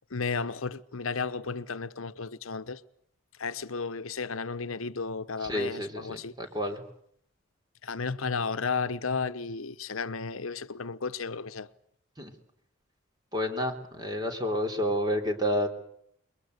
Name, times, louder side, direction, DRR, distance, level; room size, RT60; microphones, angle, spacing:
voice 1, 0.1-2.8 3.4-6.3 7.8-11.7, left 4 dB, 85° left, 1.0 m, -33 dB
voice 2, 5.4-6.8 12.2-12.3 13.3-15.7, equal, 20° right, 3.5 m, -30 dB
28.0 x 23.0 x 8.1 m
head